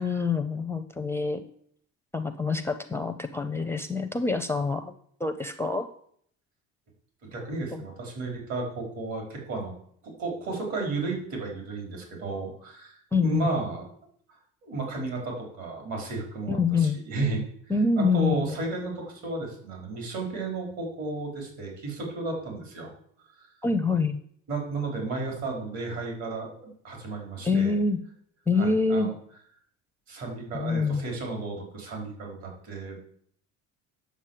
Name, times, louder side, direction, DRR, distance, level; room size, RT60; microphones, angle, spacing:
voice 1, 0.0-1.4 2.1-4.9 5.2-5.9 7.7-7.8 13.1-13.5 16.5-17.0 17.7-18.6 23.6-24.2 27.4-28.0 28.5-29.1 30.5-31.1, left 4 dB, 10° left, 8 dB, 0.5 m, -26 dB
voice 2, 7.3-9.7 10.0-13.8 14.6-17.4 18.0-22.9 23.4-23.5 24.5-27.8 28.6-29.1 30.1-33.0, right 3 dB, 60° right, 1 dB, 4.9 m, -33 dB
9.8 x 7.1 x 7.5 m, 0.64 s
cardioid pair, 150°, 31 cm